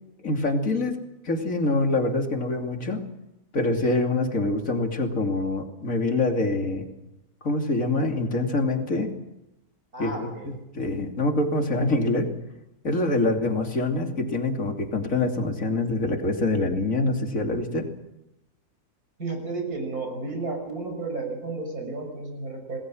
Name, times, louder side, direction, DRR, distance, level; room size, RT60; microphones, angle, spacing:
voice 1, 0.2-1.0 1.2-3.0 3.5-6.9 7.4-9.1 10.0-12.3 12.8-17.9, left 2 dB, 60° left, 3 dB, 3.2 m, -25 dB
voice 2, 9.9-10.5 19.2-22.8, right 3 dB, 75° right, 4 dB, 6.9 m, -32 dB
27.5 x 20.0 x 6.4 m, 0.90 s
omnidirectional pair, 1.6 m